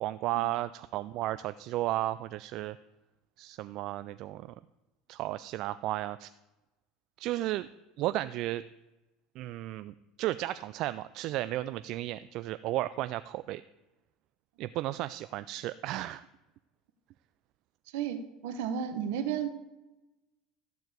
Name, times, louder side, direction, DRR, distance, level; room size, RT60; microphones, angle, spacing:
voice 1, 0.0-2.8 3.4-4.5 5.1-6.3 7.2-7.7 8.0-8.6 9.4-13.6 14.6-16.3, right 15 dB, 55° right, 14 dB, 0.3 m, -34 dB
voice 2, 17.9-19.5, right 8 dB, 80° right, 9 dB, 1.1 m, -33 dB
13.5 x 4.6 x 7.9 m, 1.0 s
supercardioid pair, 125°, 0 cm